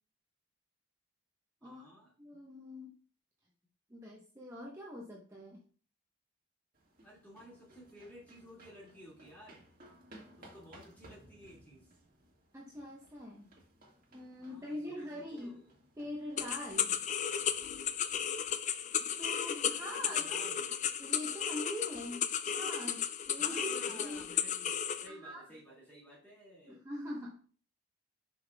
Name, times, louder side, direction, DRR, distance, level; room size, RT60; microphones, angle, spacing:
voice 1, 1.6-2.1 7.0-9.6 10.4-11.9 14.5-15.7 20.1-20.8 23.3-26.8, equal, 10° left, -6 dB, 2.2 m, -54 dB
voice 2, 2.2-2.9 3.9-5.6 12.5-13.5 14.1-15.6 16.0-17.0 19.0-20.6 21.0-24.2 25.0-25.4 26.7-27.5, left 1 dB, 15° right, -3 dB, 0.9 m, -43 dB
sound 1, 6.7-18.5, right 1 dB, 45° right, 1.8 m, -60 dB
sound 2, 16.4-25.1, left 8 dB, 40° left, 0.4 m, -34 dB
7.3 x 5.8 x 2.3 m, 0.41 s
head